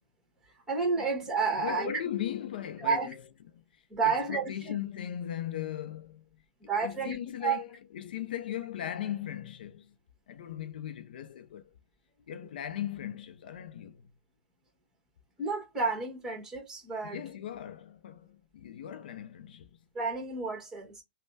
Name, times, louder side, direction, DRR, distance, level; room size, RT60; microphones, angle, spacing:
voice 1, 0.7-1.9 2.8-3.1 3.9-4.7 6.7-7.6 15.4-17.2 19.9-21.0, right 5 dB, 10° right, 1.4 m, -31 dB
voice 2, 1.5-3.2 3.5-6.2 6.8-9.9 10.3-11.7 12.3-14.1 17.0-19.8, left 10 dB, 70° left, 0.4 m, -38 dB
3.2 x 2.1 x 2.6 m
hypercardioid pair, 135°, 5 cm